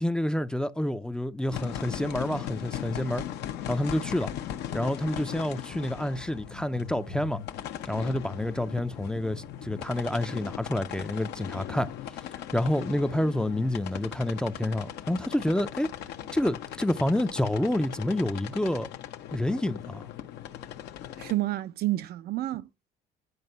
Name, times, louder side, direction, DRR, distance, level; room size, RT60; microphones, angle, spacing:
voice 1, 0.0-3.2 3.7-4.3 4.7-7.4 7.8-11.9 12.4-15.9 16.3-18.9 19.3-20.1, left 1 dB, 5° left, 0.4 m, -28 dB
sound 1, 1.5-21.3, left 11 dB, 80° left, 0.8 m, -38 dB
voice 2, 21.2-22.9, right 16 dB, 70° right, 0.5 m, -30 dB
9.7 x 4.9 x 5.5 m
cardioid pair, 110°, 17 cm